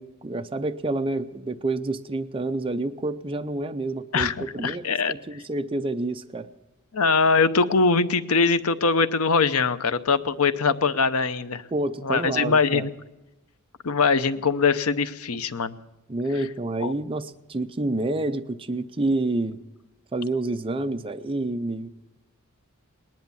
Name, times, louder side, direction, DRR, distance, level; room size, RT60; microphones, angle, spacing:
voice 1, 0.0-6.5 11.7-12.9 16.1-19.6 20.1-21.9, right 2 dB, 25° right, 8 dB, 0.5 m, -28 dB
voice 2, 4.6-5.1 6.9-11.6 12.0-12.9 13.8-15.7 16.8-16.9, left 4 dB, 75° left, 13 dB, 0.8 m, -22 dB
19.5 x 10.5 x 7.0 m, 0.99 s
head